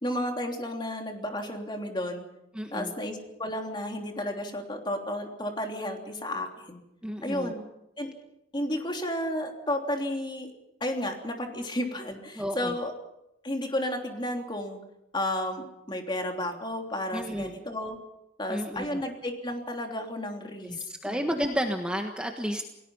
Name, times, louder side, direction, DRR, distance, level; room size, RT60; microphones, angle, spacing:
voice 1, 0.0-2.3 2.7-6.8 7.2-7.6 8.0-8.1 8.5-10.5 10.8-12.9 13.4-14.8 15.1-18.0 18.4-20.8 21.0-21.2, left 1 dB, 25° left, 3 dB, 3.2 m, -32 dB
voice 2, 2.5-2.9 7.0-7.5 12.3-12.8 17.1-17.6 18.5-19.0 20.6-22.7, equal, 5° right, 3 dB, 1.5 m, -32 dB
29.0 x 19.0 x 5.6 m, 0.83 s
head